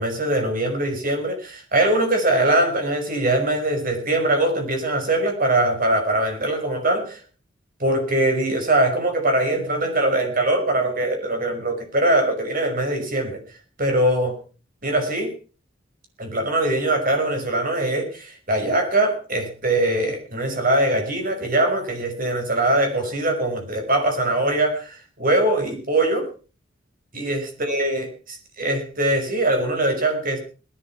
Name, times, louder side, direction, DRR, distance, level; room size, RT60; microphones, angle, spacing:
voice 1, 0.0-7.2 7.8-13.4 13.8-14.4 14.8-15.3 16.2-26.3 27.1-30.4, right 1 dB, 45° right, 4 dB, 5.5 m, -22 dB
18.5 x 11.0 x 6.1 m, 0.38 s
head